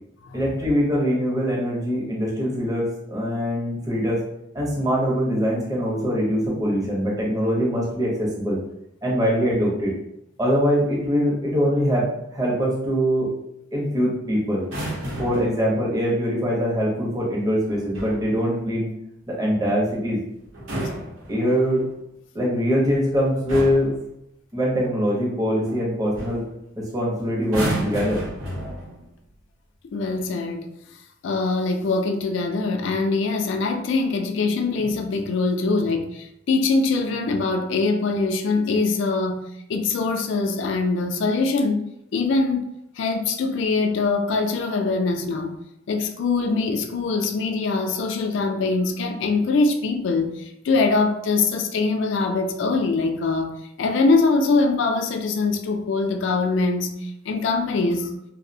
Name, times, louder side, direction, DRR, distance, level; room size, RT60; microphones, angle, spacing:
voice 1, 0.3-4.2 4.5-8.6 9.0-9.9 10.4-13.3 13.7-14.7 15.2-18.9 19.3-20.2 21.3-21.8 22.3-23.9 24.5-26.4 26.8-28.2, equal, 20° right, -4 dB, 0.6 m, -23 dB
sound 1, 14.6-15.6 17.7-18.3 20.5-21.8 22.9-23.1 23.5-24.0 25.7-25.8 26.1-26.5 27.4-29.1 30.0-30.3, equal, 85° right, 0.7 m, -31 dB
voice 2, 29.9-30.7 31.2-39.4 39.7-41.8 42.1-42.7 43.0-45.6 45.9-53.5 53.8-58.1, left 3 dB, 65° left, 5 dB, 0.3 m, -23 dB
2.5 x 2.0 x 2.6 m, 0.80 s
head